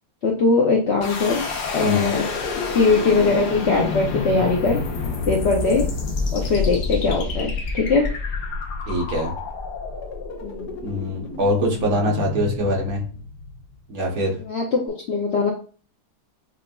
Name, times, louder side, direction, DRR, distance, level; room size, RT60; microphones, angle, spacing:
voice 1, 0.2-1.5 1.7-2.2 2.7-4.8 5.3-5.8 6.3-8.1 10.4-10.7 14.4-15.5, left 4 dB, 60° left, -1 dB, 0.7 m, -20 dB
sound 1, 1.0-13.9, left 4 dB, 85° left, 1.4 m, -28 dB
voice 2, 8.9-9.3 10.8-13.0 13.9-14.4, equal, 65° right, -1 dB, 1.4 m, -23 dB
6.4 x 2.5 x 2.2 m, 0.40 s
omnidirectional pair, 1.7 m